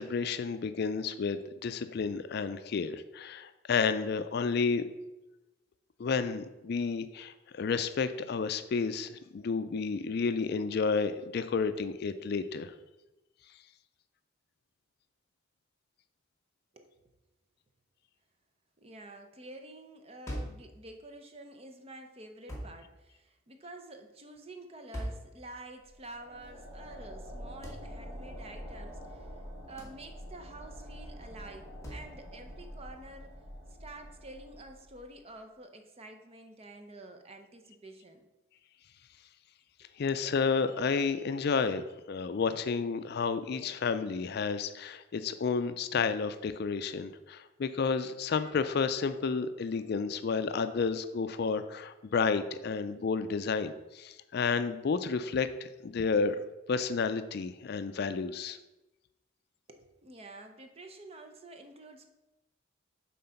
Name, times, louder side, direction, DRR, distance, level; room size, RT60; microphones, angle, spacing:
voice 1, 0.0-4.8 6.0-12.7 40.0-55.5 55.8-56.4 56.7-58.6, left 5 dB, 55° left, 11 dB, 0.4 m, -31 dB
voice 2, 18.8-29.3 29.6-33.4 33.8-38.3 59.7-62.1, right 2 dB, 30° right, 6 dB, 0.7 m, -49 dB
sound 1, 20.3-20.7 22.5-22.8 24.9-25.3 27.6-27.9 29.8-30.0 31.8-32.1, equal, 15° left, 1.4 m, -39 dB
sound 2, 25.8-35.1, equal, 70° right, 2.0 m, -46 dB
7.6 x 3.9 x 5.7 m, 1.0 s
head